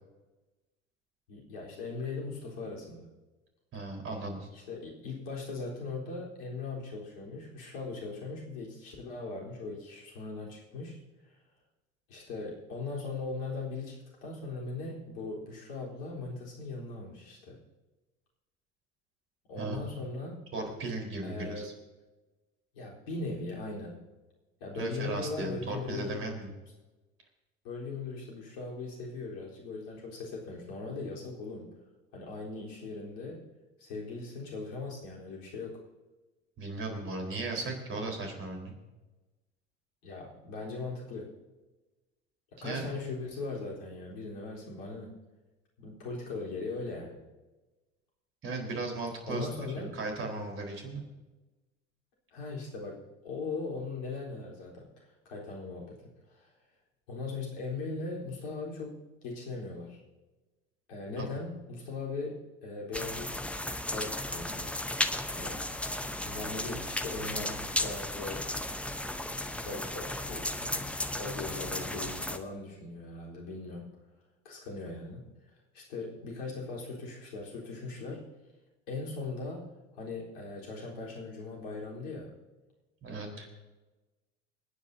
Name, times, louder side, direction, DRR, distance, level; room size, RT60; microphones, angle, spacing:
voice 1, 1.3-3.1 4.5-11.0 12.1-17.6 19.5-20.4 21.2-21.7 22.7-24.1 24.6-26.2 27.6-31.7 32.1-33.4 33.8-35.8 40.0-41.3 42.6-45.1 45.8-47.2 49.2-50.0 52.3-56.0 56.3-56.5 57.1-60.0 60.9-63.3 63.9-64.7 65.3-65.6 66.2-68.5 69.3-70.9 71.2-73.9 74.4-75.2 75.7-78.2 78.9-79.7 80.0-82.3, left 3 dB, 60° left, -3 dB, 4.1 m, -39 dB
voice 2, 3.7-4.5 19.6-19.8 20.5-21.7 24.7-26.5 36.6-38.7 42.6-42.9 48.4-49.5 49.9-51.0 61.2-61.3 83.0-83.5, right 2 dB, 35° right, 1 dB, 4.4 m, -36 dB
sound 1, 62.9-72.4, left 1 dB, 5° left, 0.9 m, -35 dB
27.5 x 10.0 x 2.8 m, 1.1 s
figure-of-eight pair, 70°, 36 cm